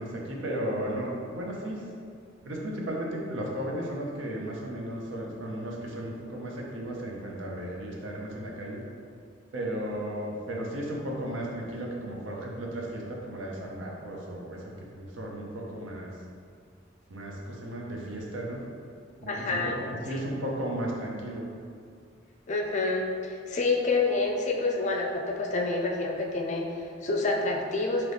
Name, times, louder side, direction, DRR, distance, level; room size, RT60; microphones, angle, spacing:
voice 1, 0.0-1.8 2.4-8.8 9.5-16.1 17.1-18.6 19.2-21.5, right 1 dB, 85° right, -1 dB, 0.7 m, -35 dB
voice 2, 19.2-19.8 22.5-28.1, left 3 dB, 40° left, 1 dB, 0.4 m, -28 dB
3.9 x 2.9 x 3.3 m, 2.3 s
head